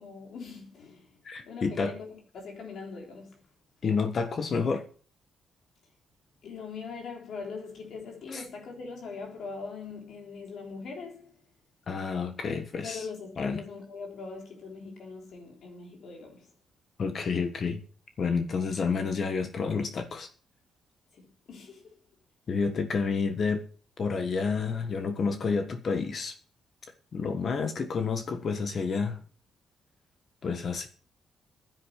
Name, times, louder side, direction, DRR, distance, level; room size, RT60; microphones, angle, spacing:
voice 1, 0.0-3.4 6.4-11.4 12.8-16.5 21.1-22.0, left 4 dB, 55° left, 3.6 m, -42 dB
voice 2, 1.2-1.9 3.8-4.9 8.3-8.4 11.9-13.0 13.4-13.6 17.0-17.8 18.2-20.3 22.5-23.6 24.0-26.3 27.1-29.2 30.4-30.9, left 5 dB, 40° left, 1.4 m, -29 dB
10.5 x 9.4 x 6.9 m
cardioid pair, 160°, 0 cm